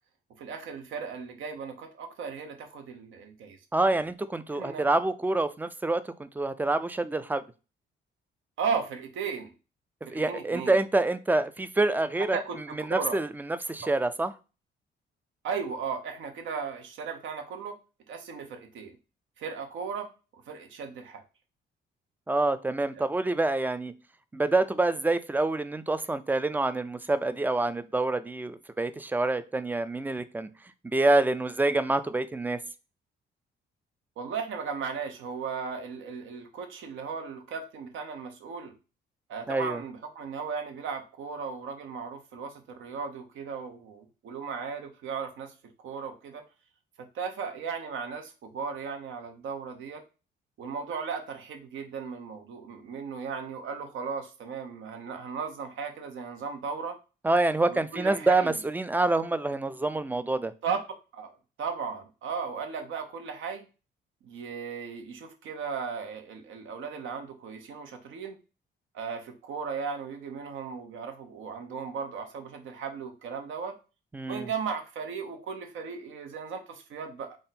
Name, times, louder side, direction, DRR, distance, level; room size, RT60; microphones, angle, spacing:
voice 1, 0.4-3.6 4.5-4.9 8.6-9.5 10.1-10.7 12.3-13.2 15.4-17.7 18.1-19.0 19.4-20.1 20.5-21.2 34.2-38.7 39.3-45.5 45.8-46.4 47.0-50.0 50.6-57.0 57.7-58.5 60.6-60.8 61.1-61.3 61.6-63.7 64.2-68.4 68.9-73.8 74.3-77.4, right 6 dB, 75° right, 5 dB, 0.8 m, -36 dB
voice 2, 3.7-7.4 10.1-12.4 12.9-14.3 22.3-23.9 24.3-30.5 30.8-32.6 39.5-39.8 57.2-60.5 74.1-74.5, right 2 dB, 10° right, 13 dB, 0.3 m, -27 dB
3.6 x 2.1 x 4.1 m, 0.32 s
cardioid pair, 90°, 20 cm